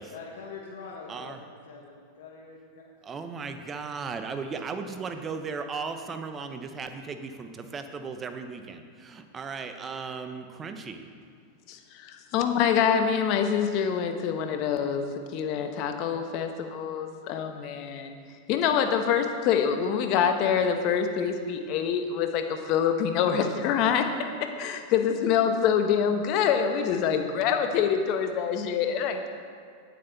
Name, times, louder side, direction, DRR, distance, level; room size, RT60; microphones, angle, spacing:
voice 1, 0.1-2.8, left 4 dB, 75° left, -1 dB, 1.1 m, -44 dB
voice 2, 1.1-1.4 3.0-11.0, right 5 dB, 25° right, 7 dB, 0.7 m, -36 dB
voice 3, 11.7-18.1 18.5-24.1 24.4-29.3, left 7 dB, 50° left, 6 dB, 0.9 m, -26 dB
8.7 x 7.8 x 3.9 m, 2.1 s
hypercardioid pair, 110°, 0 cm